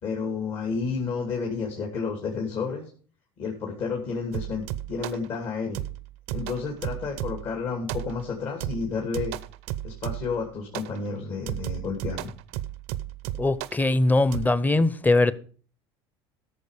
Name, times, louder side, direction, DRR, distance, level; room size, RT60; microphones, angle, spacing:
voice 1, 0.0-2.9 3.4-5.8 6.3-9.4 9.8-12.3, left 5 dB, 55° left, 2.6 m, -31 dB
sound 1, 4.3-5.3 5.7-7.5 7.9-8.3 8.6-10.4 10.7-11.0 11.5-13.8 14.3-14.5, right 14 dB, 75° right, 0.6 m, -34 dB
voice 2, 13.4-15.3, left 2 dB, 15° left, 0.8 m, -21 dB
13.5 x 6.6 x 4.9 m
supercardioid pair, 85°, 13 cm